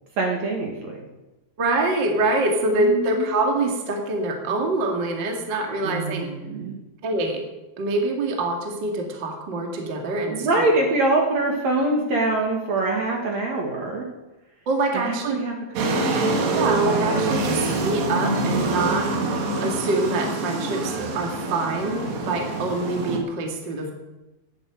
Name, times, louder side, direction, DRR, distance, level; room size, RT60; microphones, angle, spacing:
voice 1, 0.2-1.0 2.8-3.3 5.8-6.8 10.2-14.1 14.9-16.7, right 2 dB, 50° right, 0 dB, 2.7 m, -25 dB
voice 2, 1.6-6.3 7.0-7.4 7.8-10.7 14.7-15.4 16.5-19.1 19.6-23.9, right 2 dB, 35° right, 2 dB, 2.3 m, -25 dB
sound 1, 15.8-23.2, right 2 dB, 85° right, 4.2 m, -25 dB
11.5 x 11.0 x 8.9 m, 1.0 s
omnidirectional pair, 4.6 m